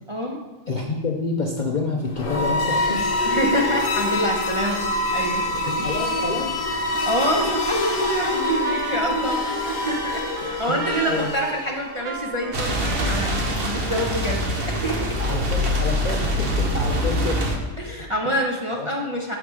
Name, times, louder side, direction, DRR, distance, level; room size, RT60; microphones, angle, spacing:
voice 1, 0.1-0.4 3.2-4.9 5.1-5.5 5.7-6.0 7.1-9.4 9.6-15.1 17.8-19.4, equal, 30° right, -1 dB, 0.7 m, -26 dB
voice 2, 0.7-3.1 5.5-6.5 7.4-7.6 8.7-9.6 10.7-10.8 11.0-11.3 15.2-17.4 18.0-18.1 18.7-18.9, left 3 dB, 45° left, 0 dB, 0.6 m, -28 dB
sound 1, 2.1-12.0, left 1 dB, 65° left, 1.3 m, -26 dB
Trumpet, 7.8-14.4, right 5 dB, 80° right, 1.2 m, -36 dB
sound 2, 12.5-17.6, equal, 45° right, 1.2 m, -24 dB
7.0 x 6.2 x 4.8 m, 1.2 s
omnidirectional pair, 1.5 m